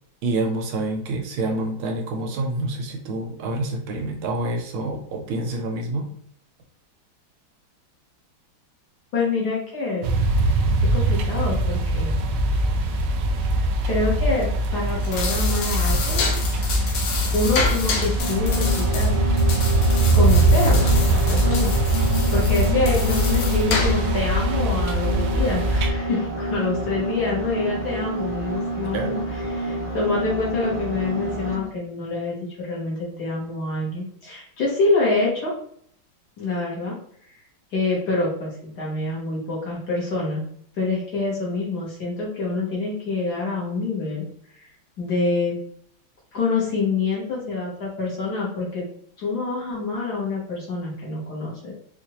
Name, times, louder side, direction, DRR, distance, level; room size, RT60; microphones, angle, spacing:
voice 1, 0.2-6.1 28.9-29.2, right 2 dB, 90° right, 3 dB, 1.6 m, -27 dB
voice 2, 9.1-10.1 10.9-12.1 13.8-16.2 17.3-19.1 20.1-22.0 22.3-29.2 29.5-35.5 36.4-37.0 37.7-38.5 38.8-40.4 40.8-44.2 44.6-44.7 45.0-45.5 46.3-48.8 49.2-51.7, left 3 dB, 55° left, -5 dB, 1.6 m, -26 dB
sound 1, 10.0-25.9, right 1 dB, 75° right, 1.0 m, -21 dB
sound 2, 14.9-24.2, left 4 dB, 70° left, 1.2 m, -29 dB
sound 3, 18.2-31.7, equal, 35° left, 1.5 m, -28 dB
4.4 x 2.5 x 2.9 m, 0.64 s
omnidirectional pair, 2.2 m